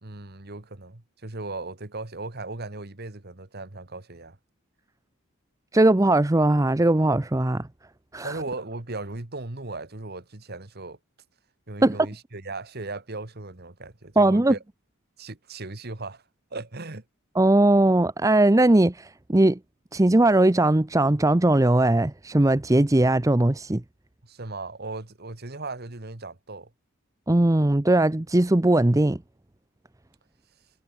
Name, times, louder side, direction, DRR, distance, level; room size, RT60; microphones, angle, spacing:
voice 1, 0.0-4.4 8.2-11.0 11.7-14.6 15.2-16.2 16.5-17.0 24.2-26.7, right 3 dB, 50° right, 1.7 m, -37 dB
voice 2, 5.7-7.7 8.1-8.3 11.8-11.9 14.2-14.5 17.4-19.6 19.9-23.8 27.3-29.2, right 1 dB, 15° right, 0.6 m, -19 dB
head